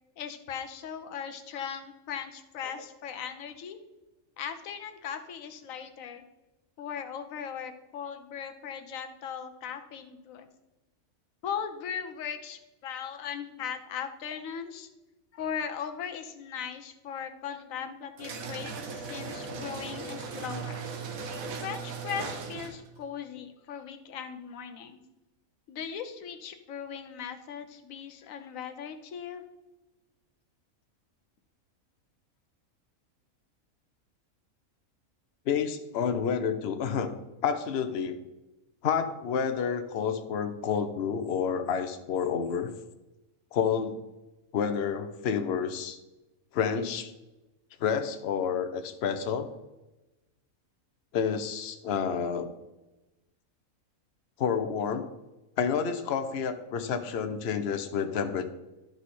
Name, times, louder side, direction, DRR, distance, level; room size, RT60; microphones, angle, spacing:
voice 1, 0.2-3.8 4.4-6.2 6.8-10.5 11.4-14.9 15.3-20.8 21.6-25.0 25.7-29.4, left 7 dB, 70° left, 7 dB, 1.2 m, -38 dB
sound 1, 18.2-22.9, right 5 dB, 75° right, 1.4 m, -38 dB
voice 2, 35.5-37.1 37.4-38.2 38.8-42.7 43.5-44.0 44.5-46.0 46.5-47.1 47.8-49.5 51.1-52.5 54.4-55.1 55.6-58.5, left 7 dB, 55° left, 8 dB, 0.9 m, -29 dB
12.0 x 4.9 x 4.2 m, 1.0 s
omnidirectional pair, 1.5 m